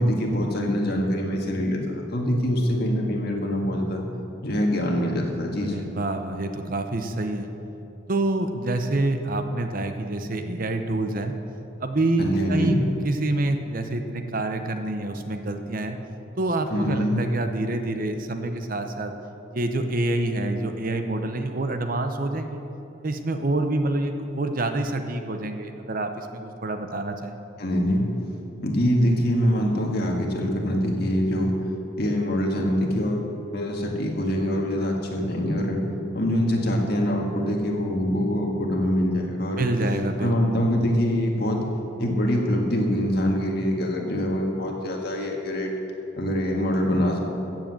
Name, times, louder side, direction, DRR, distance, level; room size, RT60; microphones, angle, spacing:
voice 1, 0.0-4.0 4.4-5.8 12.2-12.8 16.7-17.2 27.6-28.0 28.6-31.5 32.0-35.8 36.1-39.7 40.2-41.7 42.0-45.7 46.2-47.2, equal, 50° left, 0 dB, 1.9 m, -24 dB
voice 2, 5.6-7.5 8.1-11.3 11.8-16.0 16.4-19.1 19.5-22.6 23.0-27.4 39.6-40.6, right 2 dB, 40° right, 6 dB, 0.8 m, -27 dB
14.5 x 7.7 x 7.7 m, 2.9 s
head